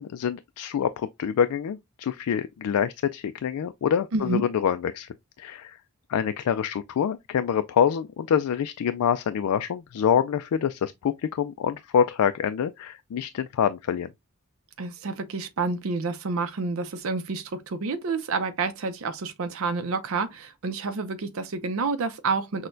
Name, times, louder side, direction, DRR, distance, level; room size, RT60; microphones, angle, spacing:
voice 1, 0.0-5.1 5.4-5.8 6.1-14.1, left 8 dB, 80° left, 0.3 m, -26 dB
voice 2, 4.1-4.4 14.8-22.7, right 4 dB, 65° right, 0.5 m, -29 dB
6.2 x 2.2 x 2.6 m
head